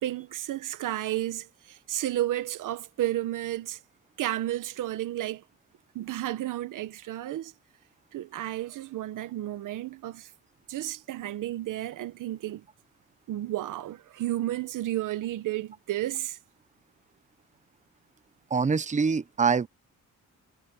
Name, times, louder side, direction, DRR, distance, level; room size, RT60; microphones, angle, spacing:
voice 1, 0.0-3.8 4.2-5.4 5.9-7.5 8.1-10.3 10.7-12.6 13.3-16.4, right 14 dB, 80° right, 1.3 m, -32 dB
voice 2, 18.5-19.7, right 5 dB, 25° right, 0.9 m, -24 dB
cardioid pair, 110°, 31 cm